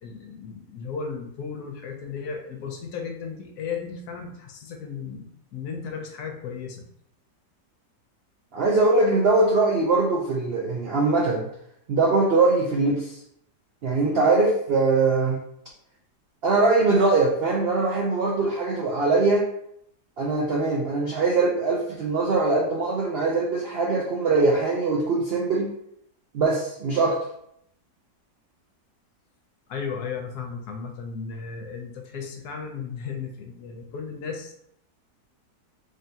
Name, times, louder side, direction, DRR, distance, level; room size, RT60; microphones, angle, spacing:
voice 1, 0.0-6.8 29.7-34.5, left 5 dB, 70° left, 3 dB, 1.1 m, -35 dB
voice 2, 8.5-11.5 11.9-13.2 13.8-15.4 16.4-19.5 20.2-25.7 26.3-27.2, right 3 dB, 85° right, -2 dB, 0.5 m, -22 dB
3.6 x 3.3 x 2.7 m, 0.72 s
omnidirectional pair, 1.8 m